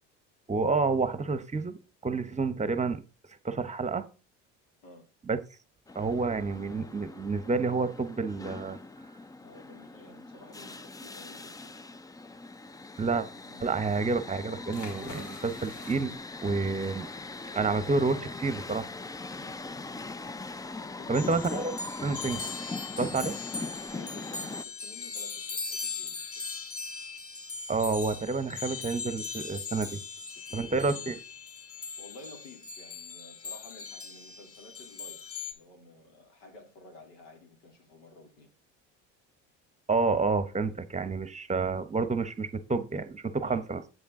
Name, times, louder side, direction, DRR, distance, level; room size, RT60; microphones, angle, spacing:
voice 1, 0.5-1.7 2.0-3.0 3.4-4.1 5.3-5.4 5.9-8.8 13.0-13.3 13.6-16.1 16.4-17.1 17.5-18.9 21.1-21.6 22.0-22.4 23.0-23.4 27.7-30.0 30.5-31.2 39.9-43.8, right 4 dB, 20° right, 1.0 m, -29 dB
sound 1, 5.9-24.6, left 3 dB, 10° left, 0.4 m, -41 dB
voice 2, 9.4-11.8 19.3-19.6 21.0-21.3 23.9-26.4 30.5-31.1 31.6-35.2 35.5-38.5 43.4-43.6, left 3 dB, 80° left, 3.1 m, -52 dB
sound 2, 14.7-23.9, left 4 dB, 55° left, 2.3 m, -52 dB
sound 3, 21.1-35.5, left 4 dB, 40° left, 1.8 m, -40 dB
8.1 x 7.1 x 3.8 m
supercardioid pair, 80°, 35 cm